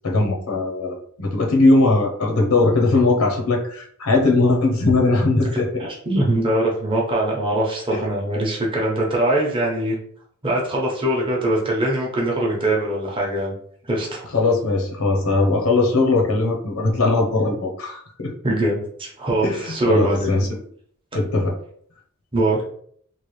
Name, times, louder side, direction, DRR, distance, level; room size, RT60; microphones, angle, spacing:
voice 1, 0.0-5.9 7.9-8.0 14.3-18.3 19.4-20.5 21.1-21.6, left 2 dB, 85° left, 1 dB, 0.8 m, -19 dB
voice 2, 5.8-10.0 10.4-13.6 13.9-14.3 18.4-20.5 22.3-22.6, right 1 dB, 25° right, -3 dB, 0.8 m, -22 dB
3.2 x 2.4 x 3.1 m, 0.62 s
head